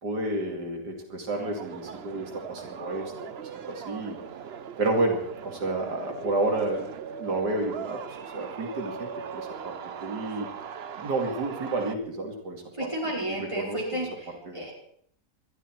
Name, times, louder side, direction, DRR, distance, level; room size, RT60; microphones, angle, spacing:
voice 1, 0.0-3.3 3.7-4.2 4.8-6.9 7.2-9.8 10.0-10.5 11.0-12.6 13.2-14.0 14.5-14.7, right 2 dB, 90° right, 2 dB, 3.2 m, -30 dB
sound 1, 1.3-12.0, right 7 dB, 50° right, 0.8 m, -40 dB
voice 2, 12.7-14.7, right 1 dB, 20° right, -3 dB, 5.1 m, -32 dB
21.0 x 13.5 x 4.6 m, 0.65 s
omnidirectional pair, 1.7 m